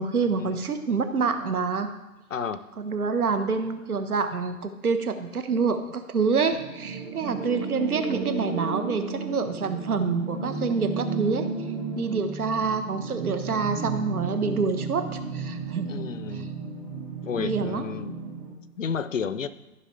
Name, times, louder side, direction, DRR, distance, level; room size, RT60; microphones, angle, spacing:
voice 1, 0.0-1.9 2.8-11.5 12.0-16.1 17.4-17.9, right 4 dB, 70° right, 8 dB, 1.3 m, -27 dB
voice 2, 2.3-2.6 15.9-16.5 17.2-18.1 18.8-19.5, left 6 dB, 55° left, 14 dB, 0.6 m, -31 dB
sound 1, 6.5-18.5, right 4 dB, 25° right, 1.3 m, -33 dB
14.0 x 5.8 x 3.3 m, 1.1 s
hypercardioid pair, 170°, 45 cm